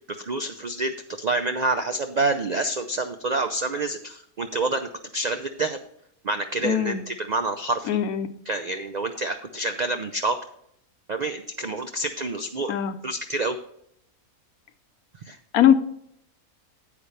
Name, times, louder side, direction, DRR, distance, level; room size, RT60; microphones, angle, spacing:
voice 1, 0.1-4.9 5.1-5.8 6.2-8.0 8.5-10.4 11.1-12.8 13.0-13.6 15.3-15.4, right 2 dB, 80° right, 7 dB, 0.3 m, -27 dB
voice 2, 6.6-7.0 7.9-8.3 12.7-13.0 15.5-15.7, left 9 dB, 85° left, 11 dB, 1.2 m, -20 dB
9.7 x 8.5 x 3.2 m, 0.71 s
omnidirectional pair, 1.5 m